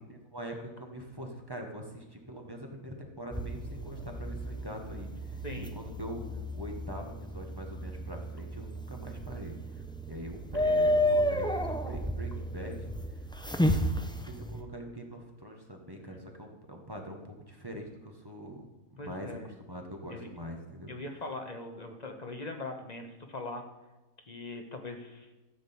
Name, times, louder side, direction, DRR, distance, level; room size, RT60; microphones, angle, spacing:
voice 1, 0.0-6.3 6.5-13.2 14.0-19.3 19.7-20.9, equal, 15° right, 2 dB, 1.6 m, -43 dB
sound 1, 3.3-14.6, equal, 5° left, 0.3 m, -32 dB
voice 2, 19.0-19.5 20.1-20.3 20.9-23.6 24.2-25.3, left 2 dB, 30° left, 4 dB, 1.3 m, -41 dB
14.0 x 5.2 x 8.6 m, 1.1 s
omnidirectional pair, 1.6 m